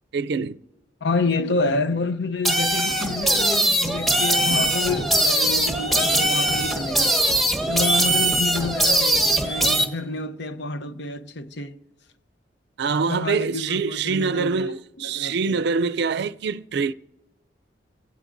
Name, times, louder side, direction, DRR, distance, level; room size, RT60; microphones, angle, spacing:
voice 1, 0.1-0.6 12.8-16.9, right 5 dB, 65° right, 0.4 m, -25 dB
voice 2, 1.0-7.2 7.7-11.8 13.1-15.6, left 3 dB, 65° left, 0.7 m, -28 dB
sound 1, 2.4-9.9, right 1 dB, ahead, 1.1 m, -21 dB
28.0 x 17.0 x 2.6 m
head